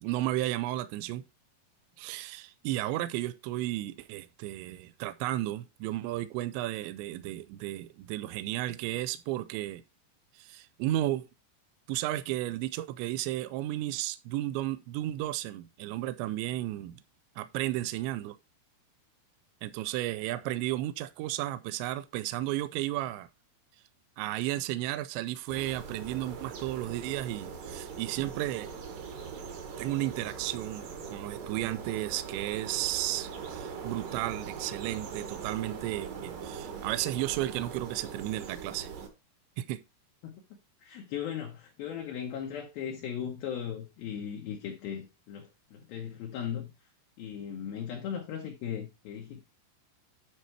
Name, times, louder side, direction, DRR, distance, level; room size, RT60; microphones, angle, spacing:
voice 1, 0.0-1.2 2.0-9.8 10.4-11.3 11.9-17.0 17.4-18.4 19.6-23.3 24.2-28.7 29.8-38.9 39.6-39.8, right 15 dB, 85° right, 2.7 m, -33 dB
sound 1, 25.5-39.1, right 6 dB, 60° right, 2.4 m, -41 dB
voice 2, 40.8-46.7 47.2-49.4, left 8 dB, 80° left, 2.1 m, -37 dB
9.7 x 4.4 x 4.6 m
omnidirectional pair, 5.6 m